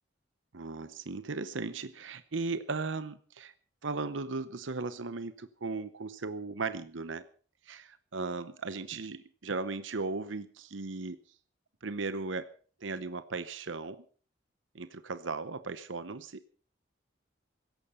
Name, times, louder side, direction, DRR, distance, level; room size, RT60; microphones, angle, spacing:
voice 1, 0.5-3.5 3.8-7.2 7.6-11.2 11.8-12.5 12.8-14.0 14.7-16.4, right 3 dB, 90° right, 13 dB, 0.9 m, -37 dB
17.0 x 14.5 x 5.5 m, 0.42 s
head